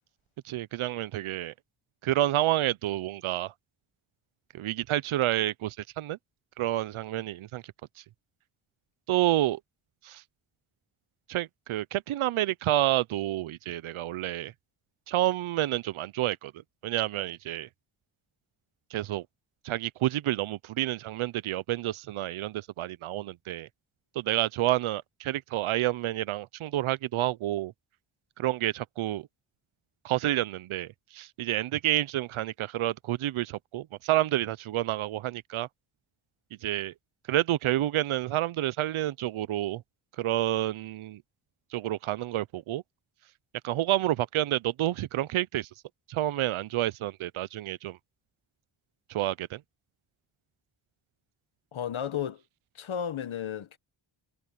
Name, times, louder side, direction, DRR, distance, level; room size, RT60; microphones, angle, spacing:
voice 1, 0.4-1.5 2.0-3.5 4.5-6.2 6.6-7.6 9.1-9.6 10.0-10.2 11.3-14.5 15.1-16.5 16.8-17.7 18.9-19.2 19.6-23.7 24.2-27.7 28.4-29.3 30.0-35.7 36.6-36.9 37.3-39.8 40.2-41.2 41.7-42.8 43.6-45.7 46.1-48.0 49.1-49.6, right 14 dB, 80° right, 0.6 m, -29 dB
voice 2, 51.7-52.4 52.7-53.8, left 9 dB, 75° left, 1.4 m, -33 dB
cardioid pair, 75°, 48 cm